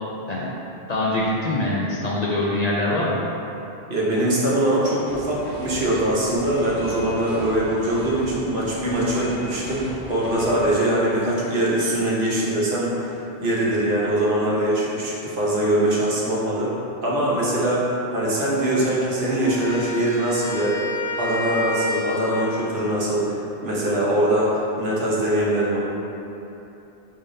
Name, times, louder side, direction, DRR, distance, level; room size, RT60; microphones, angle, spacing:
voice 1, 0.9-3.2, left 1 dB, 50° left, -6 dB, 0.6 m, -23 dB
voice 2, 3.9-16.7 17.0-20.8 21.2-25.8, right 1 dB, 60° right, -6 dB, 1.0 m, -22 dB
sound 1, 5.0-10.7, equal, 25° left, 1.3 m, -37 dB
Wind instrument woodwind instrument, 19.4-22.8, left 2 dB, 80° left, 0.9 m, -29 dB
5.4 x 3.4 x 2.7 m, 2.9 s
omnidirectional pair, 1.1 m